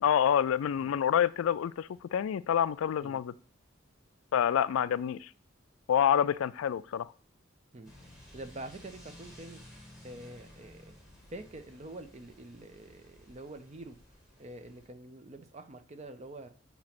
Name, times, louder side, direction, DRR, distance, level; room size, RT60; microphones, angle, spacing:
voice 1, 0.0-3.3 4.3-5.3 5.9-7.1, left 9 dB, 90° left, 17 dB, 0.3 m, -27 dB
sound 1, 7.8-14.9, left 1 dB, 5° right, 1.7 m, -54 dB
voice 2, 8.3-9.6 10.0-10.9 11.3-14.0 14.4-16.5, right 2 dB, 35° right, 8 dB, 0.6 m, -46 dB
7.3 x 2.9 x 5.8 m, 0.43 s
head